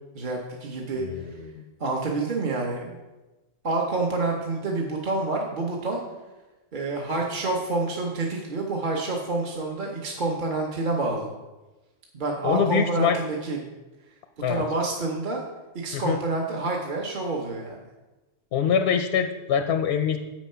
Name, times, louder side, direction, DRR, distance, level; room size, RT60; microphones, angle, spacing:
voice 1, 0.1-1.0 1.8-3.0 3.6-6.0 6.7-11.3 12.1-13.6 14.5-15.4 15.7-17.8, right 3 dB, 40° right, -1 dB, 1.0 m, -28 dB
voice 2, 12.4-13.2 14.4-14.6 15.9-16.2 18.5-20.2, left 7 dB, 65° left, 7 dB, 0.7 m, -24 dB
7.7 x 6.2 x 5.5 m, 1.1 s
omnidirectional pair, 1.4 m